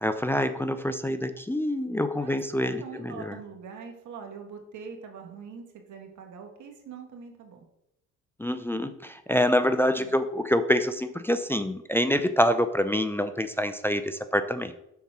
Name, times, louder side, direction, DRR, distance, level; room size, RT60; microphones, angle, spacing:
voice 1, 0.0-3.4 8.4-14.7, left 1 dB, 10° left, 9 dB, 0.5 m, -26 dB
voice 2, 2.2-7.7 9.9-10.1, right 6 dB, 75° right, 3 dB, 1.7 m, -43 dB
7.0 x 4.3 x 6.1 m, 0.85 s
cardioid pair, 90°, 30 cm